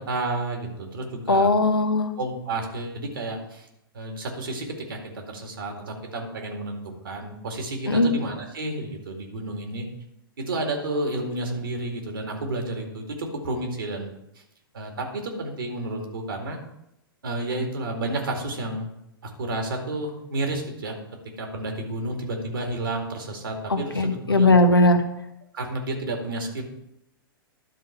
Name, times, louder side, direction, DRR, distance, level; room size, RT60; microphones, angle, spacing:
voice 1, 0.1-1.5 2.2-3.7 3.9-9.9 10.4-14.1 14.7-16.6 17.2-18.9 19.2-20.9 21.4-24.5 25.5-26.6, right 2 dB, 70° right, 3 dB, 2.1 m, -31 dB
voice 2, 1.3-2.1 7.9-8.1 23.7-25.0, left 2 dB, 85° left, 7 dB, 1.0 m, -19 dB
11.5 x 4.0 x 5.7 m, 0.81 s
figure-of-eight pair, 105°, 12 cm